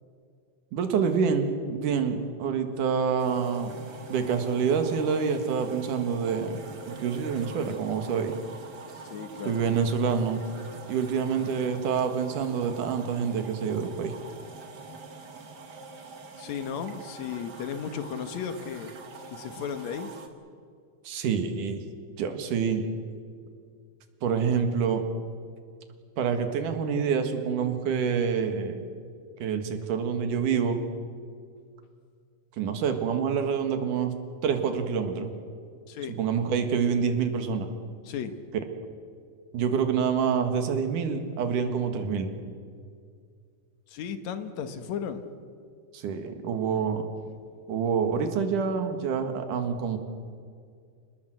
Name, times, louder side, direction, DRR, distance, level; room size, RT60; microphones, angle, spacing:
voice 1, 0.7-3.8 4.1-6.6 6.9-8.3 9.4-10.4 10.9-14.1 21.0-21.8 22.2-22.8 24.2-25.0 26.2-28.9 29.4-30.8 32.6-34.1 34.4-35.3 36.2-37.7 39.5-42.3 45.9-47.1 47.7-50.0, right 6 dB, 75° right, 7 dB, 3.3 m, -27 dB
sound 1, 3.2-20.3, right 3 dB, 40° right, 1.9 m, -44 dB
voice 2, 8.9-9.6 16.4-18.9 19.3-20.1 35.9-36.2 38.0-38.3 43.9-45.2, left 7 dB, 65° left, 9 dB, 2.4 m, -35 dB
27.0 x 19.5 x 7.9 m, 2.2 s
omnidirectional pair, 3.7 m